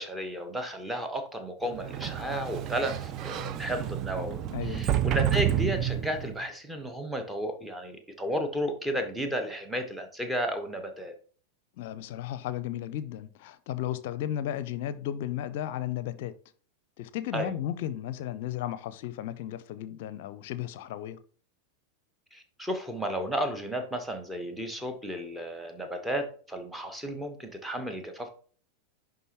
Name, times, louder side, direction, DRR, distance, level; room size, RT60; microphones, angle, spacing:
voice 1, 0.0-11.1 17.3-17.5 22.3-28.3, equal, 5° right, 1.2 m, -33 dB
Sliding door, 1.7-6.4, right 11 dB, 35° right, 0.5 m, -30 dB
voice 2, 4.5-4.8 11.8-16.3 17.0-21.2, left 11 dB, 50° left, 0.6 m, -34 dB
10.5 x 3.8 x 3.0 m
figure-of-eight pair, 90°, 0 cm